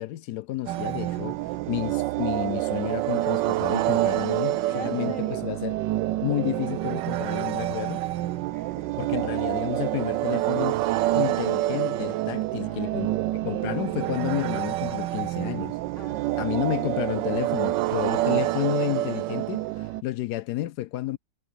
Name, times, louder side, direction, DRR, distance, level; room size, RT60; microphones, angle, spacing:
voice 1, 0.0-1.4 1.7-5.7 6.2-8.0 9.0-13.1 13.4-15.8 16.3-21.2, left 15 dB, 70° left, 1.0 m, -31 dB
sound 1, 0.7-20.0, right 15 dB, 75° right, 1.2 m, -27 dB
voice 2, 4.7-5.5 8.5-9.0 12.5-14.0 16.0-16.9, right 4 dB, 35° right, 3.4 m, -42 dB
omnidirectional pair, 2.1 m